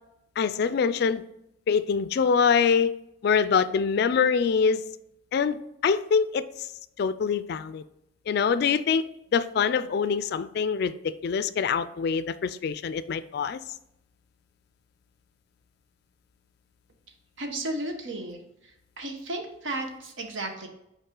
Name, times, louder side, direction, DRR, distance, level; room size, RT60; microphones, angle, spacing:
voice 1, 0.4-1.2 1.7-2.9 3.2-4.8 5.3-6.4 7.0-7.8 8.3-9.1 9.3-13.6, left 6 dB, 55° left, 14 dB, 0.3 m, -24 dB
voice 2, 17.4-20.7, right 2 dB, 75° right, 4 dB, 0.9 m, -34 dB
5.5 x 4.7 x 3.7 m, 0.82 s
head